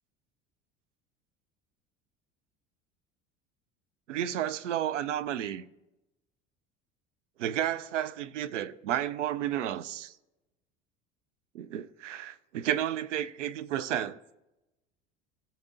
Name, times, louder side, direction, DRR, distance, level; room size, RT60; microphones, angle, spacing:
voice 1, 4.1-5.7 7.4-10.1 11.5-14.2, right 11 dB, 85° right, 0.5 m, -32 dB
20.0 x 7.3 x 2.6 m
hypercardioid pair, 70°, 36 cm